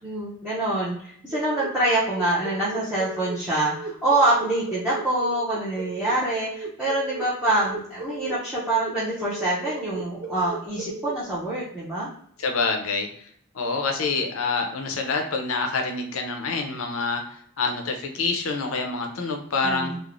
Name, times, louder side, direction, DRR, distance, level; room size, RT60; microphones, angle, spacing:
voice 1, 0.0-12.1 19.6-20.0, right 2 dB, 5° right, -10 dB, 0.5 m, -25 dB
sound 1, 1.3-11.1, right 3 dB, 60° right, 1.0 m, -35 dB
voice 2, 12.4-13.1 13.5-19.9, left 4 dB, 70° left, 4 dB, 0.5 m, -27 dB
3.1 x 2.0 x 2.5 m, 0.67 s
head